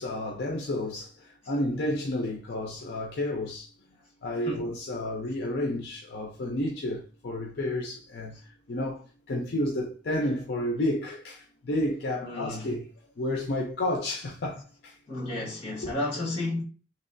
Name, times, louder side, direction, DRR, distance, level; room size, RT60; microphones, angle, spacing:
voice 1, 0.0-3.7 4.2-12.9 13.2-15.0 15.8-15.9, left 1 dB, 60° left, 0.5 m, -31 dB
voice 2, 12.2-12.8 15.1-16.6, left 2 dB, 30° left, 1.3 m, -32 dB
3.1 x 2.9 x 2.5 m
head